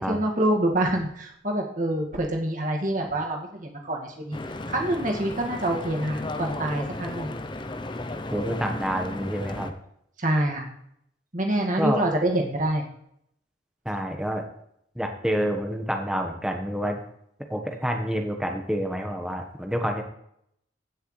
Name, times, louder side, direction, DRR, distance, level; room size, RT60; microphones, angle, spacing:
voice 1, 0.1-4.4 4.7-7.3 10.2-10.7 11.3-12.8, right 1 dB, 40° right, 1 dB, 1.9 m, -26 dB
Stream / Boat Water vehicle, 4.3-9.7, left 2 dB, 25° left, 0.6 m, -34 dB
voice 2, 8.3-9.7 11.8-12.0 13.8-14.4 14.9-17.0 17.5-20.0, equal, 5° right, 3 dB, 1.2 m, -28 dB
16.0 x 6.5 x 3.2 m, 0.73 s
head